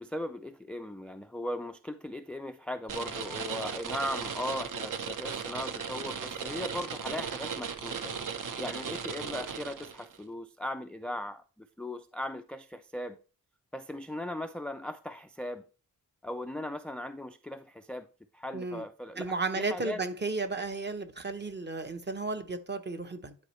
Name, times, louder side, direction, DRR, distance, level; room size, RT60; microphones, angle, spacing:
voice 1, 0.0-8.1 8.6-13.2 13.7-15.6 16.2-18.1 18.3-20.0, left 1 dB, 5° left, 0.3 m, -38 dB
sound 1, 2.9-10.2, right 6 dB, 60° right, 0.9 m, -36 dB
voice 2, 18.5-18.8 19.2-23.4, right 3 dB, 30° right, 0.8 m, -33 dB
11.0 x 4.2 x 3.2 m
wide cardioid pair, 105°, 36 cm